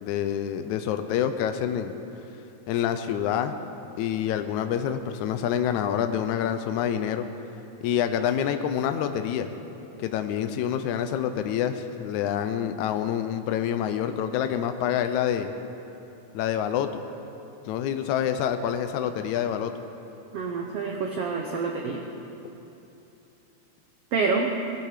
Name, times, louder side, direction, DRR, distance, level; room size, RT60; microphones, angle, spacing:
voice 1, 0.0-2.0 2.7-3.6 4.0-7.2 7.8-9.5 10.0-15.5 16.3-17.0 17.7-19.7, left 9 dB, 85° left, 8 dB, 1.7 m, -27 dB
voice 2, 20.3-22.0 24.1-24.6, right 4 dB, 85° right, 1 dB, 1.3 m, -27 dB
20.0 x 12.0 x 5.0 m, 2.9 s
omnidirectional pair, 4.2 m